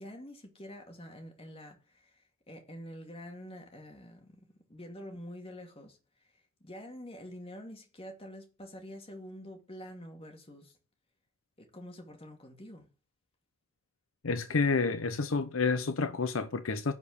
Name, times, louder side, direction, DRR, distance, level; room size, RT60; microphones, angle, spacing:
voice 1, 0.0-10.8 11.6-12.9, equal, 25° left, 2.3 m, -47 dB
voice 2, 14.2-16.9, left 4 dB, 65° left, 0.7 m, -29 dB
10.5 x 5.1 x 6.6 m
head